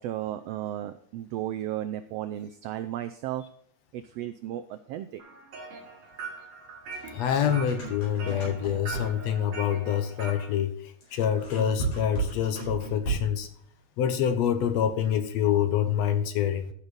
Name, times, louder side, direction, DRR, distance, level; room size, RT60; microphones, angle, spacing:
voice 1, 0.0-3.4 3.9-5.2, right 12 dB, 85° right, 11 dB, 1.4 m, -34 dB
sound 1, 5.2-10.5, right 4 dB, 65° right, 3.5 m, -42 dB
sound 2, 6.9-9.4 11.0-13.5, right 3 dB, 85° left, 5.8 m, -34 dB
voice 2, 7.1-13.5 14.0-16.7, left 9 dB, 70° left, 9 dB, 2.0 m, -26 dB
14.0 x 5.8 x 4.0 m, 0.67 s
omnidirectional pair, 3.4 m